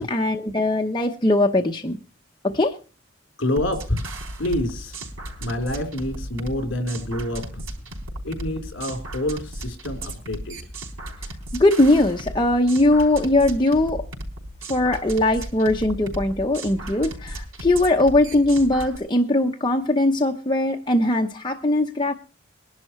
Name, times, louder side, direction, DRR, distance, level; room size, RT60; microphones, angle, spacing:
voice 1, 0.0-2.0 2.4-2.8 11.5-14.1 14.7-22.1, left 1 dB, 20° left, 2 dB, 0.8 m, -20 dB
voice 2, 3.4-4.1 4.4-5.0 5.4-7.6 8.2-10.6, left 1 dB, 60° left, 4 dB, 3.8 m, -27 dB
sound 1, 3.6-19.0, right 1 dB, 90° right, 4.0 m, -35 dB
21.5 x 11.5 x 3.2 m, 0.34 s
head